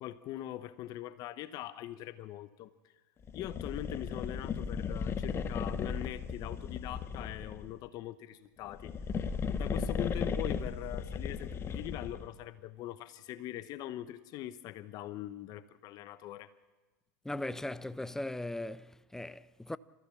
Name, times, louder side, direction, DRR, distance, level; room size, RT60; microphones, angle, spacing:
voice 1, 0.0-2.7 3.3-8.9 9.5-16.5, left 13 dB, 45° left, 1.0 m, -42 dB
sound 1, 3.3-7.7 8.6-12.3, left 6 dB, 25° left, 1.4 m, -36 dB
voice 2, 17.2-19.8, left 1 dB, 5° left, 0.6 m, -38 dB
29.5 x 15.0 x 7.3 m
hypercardioid pair, 110°, 9 cm